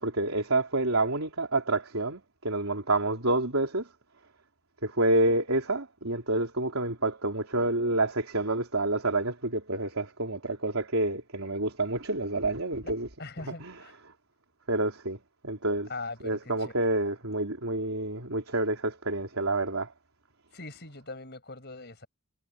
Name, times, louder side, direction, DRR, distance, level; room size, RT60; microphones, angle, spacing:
voice 1, 0.0-3.9 4.8-13.1 13.4-14.1 14.7-15.2 15.4-15.9 16.2-19.9, right 2 dB, 80° right, 3.9 m, -28 dB
voice 2, 13.2-14.0 15.9-16.7 20.5-22.1, left 3 dB, 50° left, 6.3 m, -41 dB
head